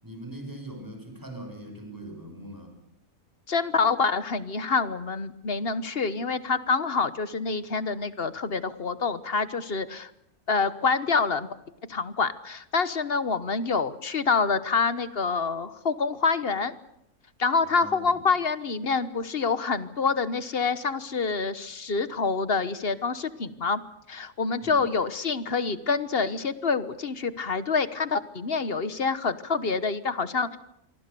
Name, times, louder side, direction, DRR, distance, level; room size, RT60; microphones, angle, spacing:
voice 1, 0.0-2.7 17.6-18.2 24.6-24.9, right 1 dB, 15° right, 3 dB, 6.4 m, -41 dB
voice 2, 3.5-10.1 10.5-11.5 11.9-16.7 17.4-23.8 24.1-30.6, left 4 dB, 45° left, 14 dB, 1.3 m, -27 dB
27.0 x 23.5 x 6.9 m, 0.79 s
omnidirectional pair, 1.5 m